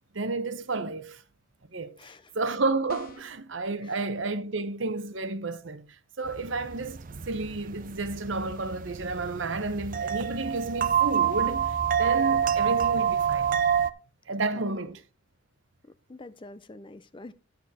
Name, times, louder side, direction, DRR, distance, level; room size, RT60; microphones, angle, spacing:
voice 1, 0.1-1.2 1.7-2.0 2.3-5.9 6.2-13.5 14.3-15.0, right 3 dB, 65° right, 0.9 m, -31 dB
voice 2, 2.0-2.3 3.8-4.0 14.5-15.0 15.8-17.3, left 2 dB, 25° left, 0.5 m, -47 dB
sound 1, 2.9-3.4, left 1 dB, 45° left, 0.9 m, -46 dB
sound 2, 6.3-13.9, right 8 dB, 40° right, 0.5 m, -27 dB
10.5 x 7.0 x 4.2 m
head